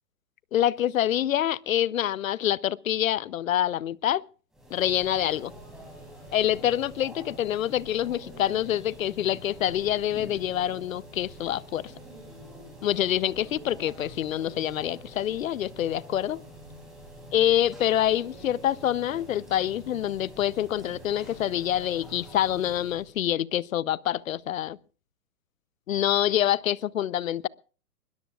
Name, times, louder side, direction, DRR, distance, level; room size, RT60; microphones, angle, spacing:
voice 1, 0.5-4.2 4.7-5.5 6.3-11.9 12.8-16.4 17.3-24.8 25.9-27.5, left 11 dB, 60° left, 0.7 m, -26 dB
sound 1, 4.5-23.1, right 1 dB, ahead, 6.7 m, -46 dB
21.0 x 21.0 x 2.4 m
hypercardioid pair, 160°, 46 cm